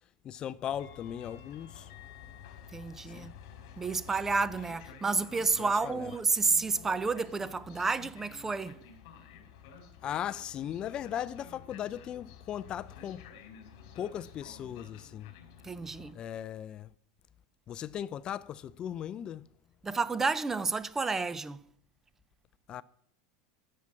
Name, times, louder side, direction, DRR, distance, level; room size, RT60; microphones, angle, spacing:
voice 1, 0.2-1.9 3.1-3.3 5.5-6.1 10.0-13.2 14.0-15.3 16.1-16.9 17.7-19.5 22.7-22.8, left 10 dB, 30° left, 0.4 m, -38 dB
Train, 0.7-16.1, left 8 dB, 65° left, 3.0 m, -51 dB
voice 2, 2.7-3.3 3.8-8.8 15.6-16.2 19.8-21.6, right 4 dB, 15° right, 0.6 m, -30 dB
13.5 x 7.5 x 9.7 m
supercardioid pair, 140°, 3 cm